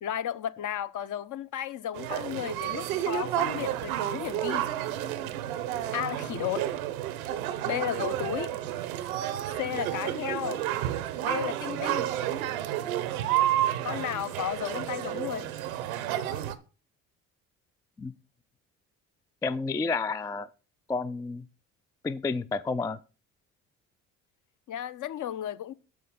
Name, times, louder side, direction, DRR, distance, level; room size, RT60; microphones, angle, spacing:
voice 1, 0.0-4.7 5.9-6.7 7.6-8.5 9.6-10.6 11.2-12.1 13.8-15.5 24.7-25.7, left 10 dB, 50° left, 0.8 m, -33 dB
sound 1, 1.9-16.5, right 12 dB, 80° right, 0.8 m, -31 dB
voice 2, 19.4-20.5 20.9-21.4 22.0-23.0, left 4 dB, 10° left, 0.3 m, -30 dB
6.8 x 6.4 x 5.2 m
hypercardioid pair, 55°, 41 cm